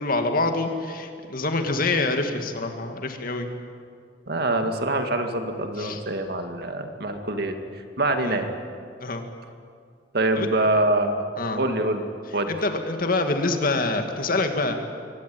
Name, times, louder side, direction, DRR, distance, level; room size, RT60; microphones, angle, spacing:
voice 1, 0.0-3.5 5.8-6.0 8.2-8.4 9.0-9.2 10.4-10.5 11.4-11.6 12.5-14.8, left 2 dB, 50° left, 6 dB, 2.2 m, -26 dB
voice 2, 4.3-8.5 10.1-11.2 11.6-12.0 12.3-12.5, right 2 dB, 60° right, 6 dB, 2.1 m, -25 dB
24.0 x 17.5 x 9.4 m, 2.3 s
head